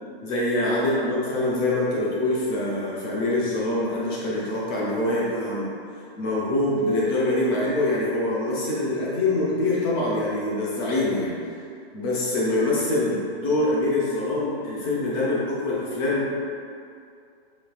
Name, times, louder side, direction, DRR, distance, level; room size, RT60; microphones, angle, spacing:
voice 1, 0.2-5.7 6.2-11.4 11.9-16.4, left 2 dB, 25° left, -6 dB, 0.7 m, -24 dB
5.1 x 2.7 x 2.3 m, 2.4 s
hypercardioid pair, 160°, 31 cm